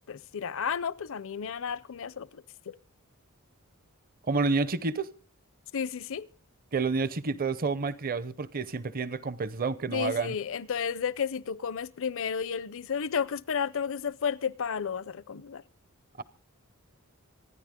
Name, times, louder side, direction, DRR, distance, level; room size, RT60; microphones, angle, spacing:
voice 1, 0.1-2.7 5.7-6.3 9.9-15.6, left 7 dB, 60° left, 0.6 m, -32 dB
voice 2, 4.2-5.1 6.7-10.4 16.2-16.3, right 4 dB, 40° right, 0.7 m, -29 dB
26.5 x 10.0 x 3.7 m
head